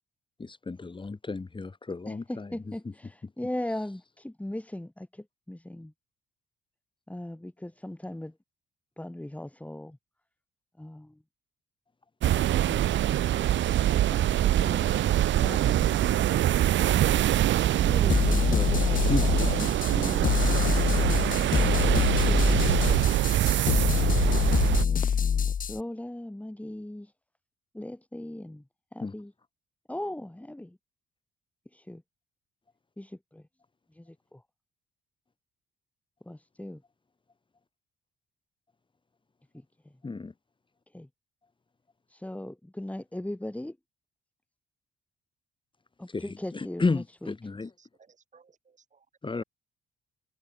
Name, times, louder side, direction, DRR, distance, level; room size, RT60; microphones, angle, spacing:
voice 1, 0.4-2.5 18.3-18.8 19.1-20.4 25.0-25.1 29.0-29.1 40.0-40.3 46.1-47.7 49.2-49.4, left 3 dB, 25° left, 4.7 m, -33 dB
voice 2, 2.1-5.9 7.1-8.3 9.0-10.0 10.8-11.2 12.7-13.3 13.9-15.0 15.4-16.2 17.8-19.5 20.0-23.0 24.7-27.1 27.7-28.6 28.9-29.3 29.9-30.8 31.7-32.0 33.0-33.4 33.9-34.4 36.2-36.8 39.5-39.9 40.9-41.1 42.1-43.8 46.0-47.3, left 1 dB, 5° left, 7.0 m, -39 dB
sound 1, 12.2-24.9, right 12 dB, 70° right, 1.0 m, -24 dB
sound 2, 18.1-25.8, left 7 dB, 45° left, 1.3 m, -25 dB
voice 3, 47.8-49.1, right 5 dB, 40° right, 5.3 m, -61 dB
cardioid pair, 90°, 20 cm